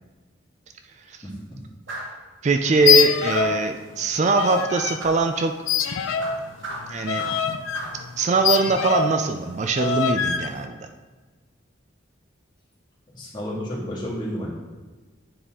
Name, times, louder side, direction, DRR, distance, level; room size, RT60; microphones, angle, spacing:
voice 1, 1.2-1.6 13.1-14.5, equal, 20° left, -6 dB, 1.9 m, -31 dB
sound 1, 1.9-2.2 3.3-3.7 5.0-5.2 6.2-7.5 7.7-8.0, right 1 dB, 65° right, 1.7 m, -35 dB
voice 2, 2.4-5.5 6.9-7.2 8.2-10.9, right 4 dB, 35° right, 6 dB, 0.3 m, -22 dB
sound 2, 2.8-3.7 3.9-5.0 5.7-9.2 9.8-10.5, left 8 dB, 85° left, 0.5 m, -24 dB
9.4 x 4.1 x 3.7 m, 1.3 s
head